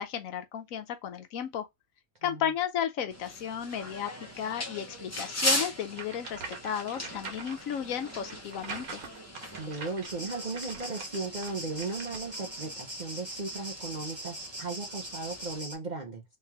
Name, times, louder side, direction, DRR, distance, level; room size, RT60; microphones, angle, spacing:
voice 1, 0.0-1.7 2.2-4.1 4.4-9.0, left 9 dB, 70° left, 1.0 m, -34 dB
sound 1, 3.1-15.6, left 1 dB, 10° left, 0.9 m, -38 dB
sound 2, 5.9-12.4, right 4 dB, 75° right, 1.6 m, -44 dB
voice 2, 9.5-16.2, right 3 dB, 40° right, 0.7 m, -36 dB
sound 3, 10.0-15.7, right 1 dB, 20° right, 1.1 m, -41 dB
3.2 x 2.9 x 3.5 m
omnidirectional pair, 1.5 m